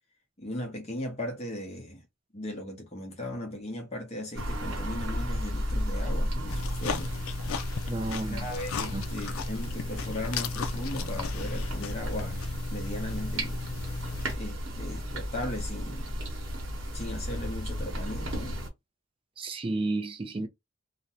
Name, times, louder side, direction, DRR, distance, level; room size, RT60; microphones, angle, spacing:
voice 1, 0.4-2.0 2.3-7.1 8.3-12.4 12.7-13.6 14.3-16.2 16.9-18.6, left 1 dB, 30° left, 0.7 m, -37 dB
sound 1, 4.3-18.7, equal, 70° right, 1.0 m, -34 dB
sound 2, 6.5-14.4, left 5 dB, 85° left, 0.4 m, -36 dB
voice 2, 7.9-8.5 8.9-9.0 19.4-20.5, right 2 dB, 25° right, 0.3 m, -32 dB
2.5 x 2.1 x 2.8 m
head